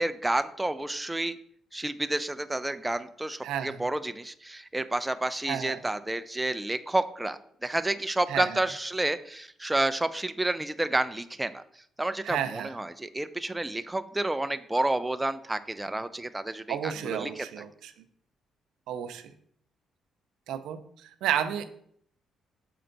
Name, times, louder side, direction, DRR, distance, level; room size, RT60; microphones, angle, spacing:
voice 1, 0.0-1.4 1.7-11.6 12.0-17.5, right 2 dB, 10° right, 11 dB, 0.3 m, -30 dB
voice 2, 3.4-3.8 5.5-5.8 8.3-8.6 12.2-12.8 16.7-17.9 18.9-19.3 20.5-21.6, right 10 dB, 85° right, 10 dB, 0.5 m, -32 dB
6.7 x 4.4 x 3.8 m, 0.66 s
cardioid pair, 90°, 0 cm